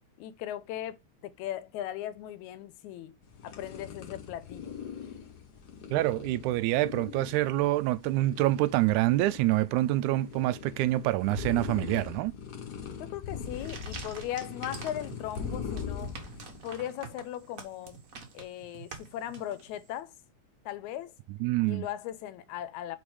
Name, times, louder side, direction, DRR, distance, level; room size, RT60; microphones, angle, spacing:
voice 1, 0.2-1.0 1.2-3.1 3.4-4.8 13.0-16.1 16.6-18.0 18.3-20.1 20.7-21.1 21.6-23.0, left 12 dB, 85° left, 2.0 m, -38 dB
sound 1, 3.2-16.6, left 7 dB, 55° left, 1.1 m, -41 dB
voice 2, 5.9-12.3 21.4-21.9, right 16 dB, 90° right, 2.0 m, -26 dB
sound 2, 13.4-19.9, right 5 dB, 50° right, 1.0 m, -46 dB
5.3 x 4.4 x 4.7 m
omnidirectional pair, 3.4 m